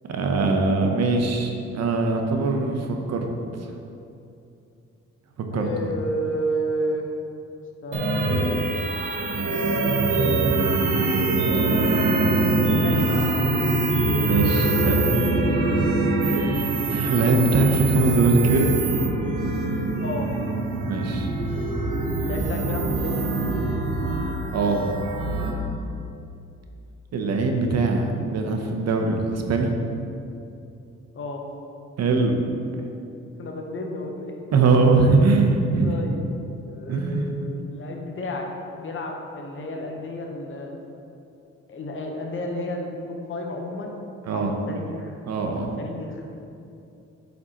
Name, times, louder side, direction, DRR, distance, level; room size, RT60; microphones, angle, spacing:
voice 1, 0.1-2.8 3.1-3.3 3.6-3.7 5.5-5.9 9.3-9.6 14.2-15.1 15.5-15.7 16.2-18.7 20.8-21.3 24.5-24.9 27.1-29.7 32.0-32.3 34.5-36.0 36.9-37.3 44.3-44.5 45.3-45.7, right 3 dB, 60° right, 3 dB, 0.8 m, -22 dB
voice 2, 5.5-7.1 7.8-8.6 12.8-13.5 20.0-20.3 22.2-23.7 31.1-31.5 33.4-34.3 35.8-36.2 36.7-38.5 38.8-40.8 41.7-44.0 44.3-45.2 45.4-46.2, equal, 45° left, 1 dB, 0.9 m, -32 dB
sound 1, 7.9-25.5, right 2 dB, 85° right, 1.0 m, -23 dB
8.0 x 5.1 x 2.9 m, 2.7 s
cardioid pair, 90°, 30 cm